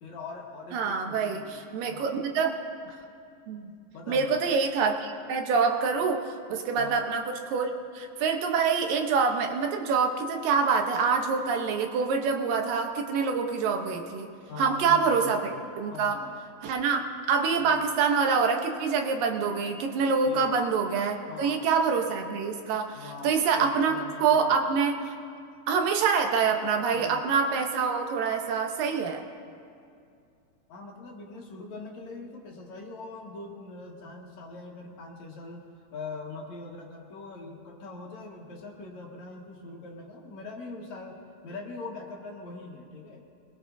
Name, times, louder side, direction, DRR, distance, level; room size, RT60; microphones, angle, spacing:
voice 1, 0.0-2.2 3.9-4.4 6.8-7.0 14.5-15.6 15.9-16.4 17.6-18.0 20.2-20.5 21.3-21.7 22.9-24.7 26.9-27.4 30.7-35.6 35.9-41.2 41.4-43.2, left 3 dB, 60° left, -1 dB, 2.5 m, -42 dB
voice 2, 0.7-2.5 2.9-3.0 3.5-3.7 4.1-14.3 14.6-15.4 15.8-16.2 16.6-23.9 24.2-25.1 25.7-29.2, right 5 dB, 75° right, 4 dB, 2.6 m, -26 dB
23.5 x 21.0 x 2.7 m, 2.4 s
omnidirectional pair, 4.1 m